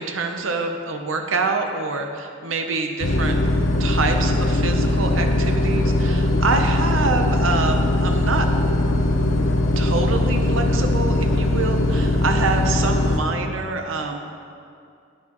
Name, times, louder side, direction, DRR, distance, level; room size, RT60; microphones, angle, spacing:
voice 1, 0.0-3.4 3.8-8.5 9.8-14.2, right 3 dB, 75° right, 4 dB, 0.8 m, -26 dB
sound 1, 3.0-13.2, left 1 dB, 85° left, 0.8 m, -20 dB
9.6 x 9.6 x 3.1 m, 2.4 s
head